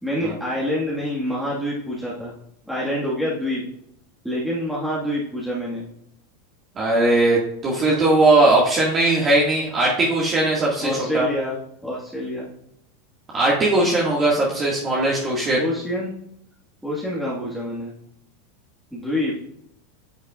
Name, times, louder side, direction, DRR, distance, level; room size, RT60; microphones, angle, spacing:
voice 1, 0.0-2.3 2.7-3.6 4.2-5.9 10.8-11.6 11.8-12.5 15.6-16.1 16.8-17.9 18.9-19.4, left 1 dB, ahead, -7 dB, 1.8 m, -26 dB
voice 2, 6.8-11.3 13.3-15.6, right 2 dB, 30° right, -4 dB, 2.0 m, -19 dB
9.8 x 6.3 x 2.5 m, 0.76 s
hypercardioid pair, 95°, 0 cm